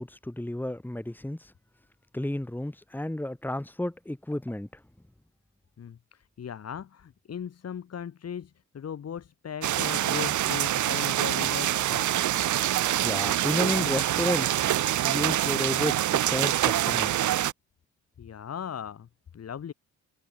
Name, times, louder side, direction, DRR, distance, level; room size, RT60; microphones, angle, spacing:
voice 1, 0.0-1.5 2.1-4.7 13.0-14.7 15.1-17.3, left 1 dB, 5° left, 3.9 m, -32 dB
voice 2, 5.8-12.1 18.2-19.7, left 8 dB, 55° left, 7.9 m, -38 dB
sound 1, 9.6-17.5, right 13 dB, 75° right, 2.4 m, -25 dB
cardioid pair, 90°, 30 cm